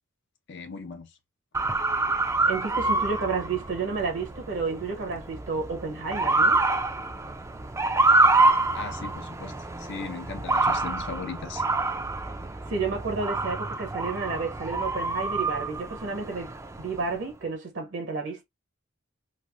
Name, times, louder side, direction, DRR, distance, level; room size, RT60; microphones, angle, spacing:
voice 1, 0.5-1.2 8.7-11.7, left 4 dB, 60° left, 0.6 m, -38 dB
Motor vehicle (road) / Siren, 1.5-17.1, right 2 dB, 15° right, 0.4 m, -26 dB
voice 2, 2.5-6.6 12.7-18.4, right 4 dB, 65° right, 0.9 m, -31 dB
3.1 x 2.5 x 2.4 m
head